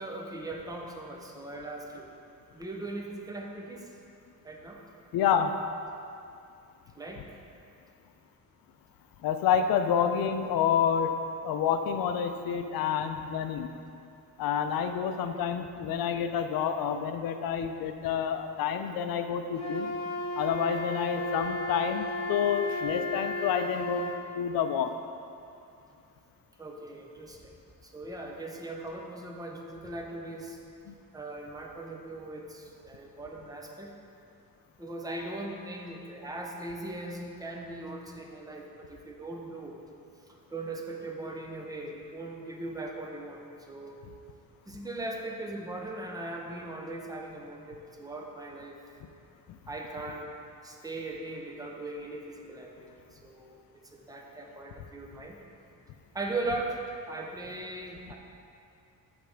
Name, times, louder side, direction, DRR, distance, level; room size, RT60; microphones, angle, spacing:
voice 1, 0.0-2.1 2.5-3.9 4.4-4.8 7.0-7.2 15.0-15.4 21.1-21.3 26.6-27.5 27.8-30.6 31.1-33.9 34.8-39.8 40.5-43.4 43.7-43.9 44.7-48.8 49.7-50.3 50.6-53.6 53.9-55.4 56.1-58.1, right 2 dB, 10° right, 0 dB, 0.6 m, -39 dB
voice 2, 5.1-5.5 9.2-11.2 11.4-13.7 14.4-19.9 20.4-25.0 30.9-31.0 49.5-49.6, left 8 dB, 85° left, 8 dB, 0.5 m, -28 dB
Wind instrument woodwind instrument, 19.6-24.2, left 1 dB, 15° left, 1.4 m, -34 dB
8.1 x 3.4 x 6.3 m, 2.6 s
cardioid pair, 165°, 35 cm